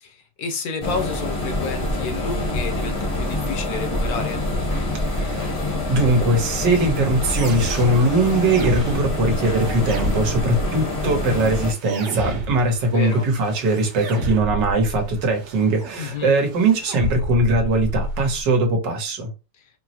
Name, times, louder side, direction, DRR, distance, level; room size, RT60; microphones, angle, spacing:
voice 1, 0.0-4.4 12.9-13.2 16.0-16.3, left 5 dB, 70° left, 1.0 m, -30 dB
sound 1, 0.8-11.7, left 1 dB, 35° left, 0.7 m, -26 dB
voice 2, 5.1-5.5 5.9-19.3, right 2 dB, 85° right, 1.7 m, -20 dB
sound 2, 6.4-18.4, right 2 dB, 70° right, 1.5 m, -31 dB
4.4 x 2.0 x 2.8 m
omnidirectional pair, 1.9 m